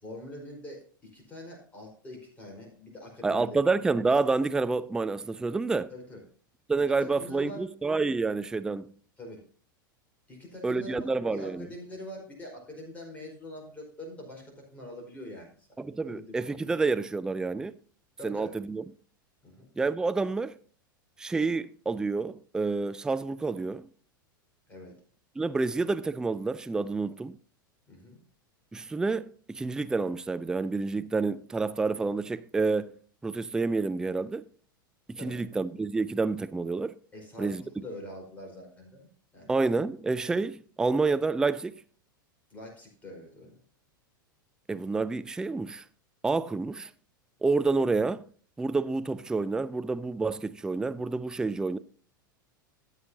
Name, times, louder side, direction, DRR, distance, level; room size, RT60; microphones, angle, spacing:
voice 1, 0.0-3.6 5.9-6.2 7.0-7.7 9.2-9.4 10.3-15.7 16.0-16.7 18.2-18.5 19.4-19.7 24.7-25.0 27.9-28.2 35.2-35.4 37.1-39.5 42.5-43.6, left 1 dB, 10° left, 4.6 m, -44 dB
voice 2, 3.2-5.9 6.7-8.9 10.6-11.7 15.8-17.7 18.2-18.8 19.8-20.5 21.2-23.9 25.4-27.4 28.7-32.9 33.2-34.4 35.1-36.9 37.4-37.6 39.5-41.8 44.7-45.8 46.2-46.9 47.4-48.2 48.6-51.8, right 3 dB, 5° right, 0.3 m, -28 dB
13.5 x 7.9 x 2.8 m
figure-of-eight pair, 90°, 11 cm